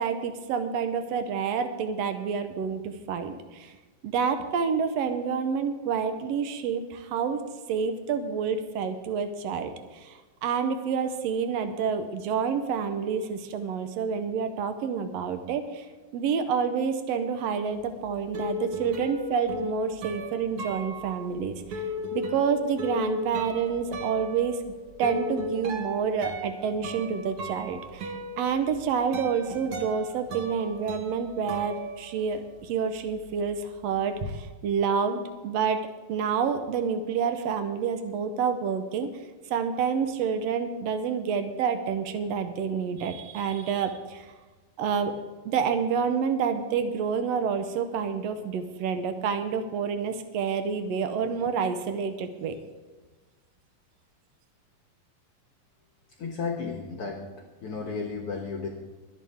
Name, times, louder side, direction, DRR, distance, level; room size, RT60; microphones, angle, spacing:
voice 1, 0.0-3.7 4.0-7.4 7.7-15.9 16.1-21.8 22.1-24.6 25.0-35.8 36.1-39.1 39.5-44.3 44.8-45.2 45.4-52.6, right 6 dB, 80° right, 9 dB, 1.5 m, -28 dB
sound 1, 17.8-32.6 32.9-34.3, left 1 dB, 55° right, 1.6 m, -36 dB
voice 2, 56.2-58.7, left 4 dB, 60° left, 2 dB, 1.6 m, -33 dB
22.5 x 9.0 x 3.6 m, 1.3 s
omnidirectional pair, 4.0 m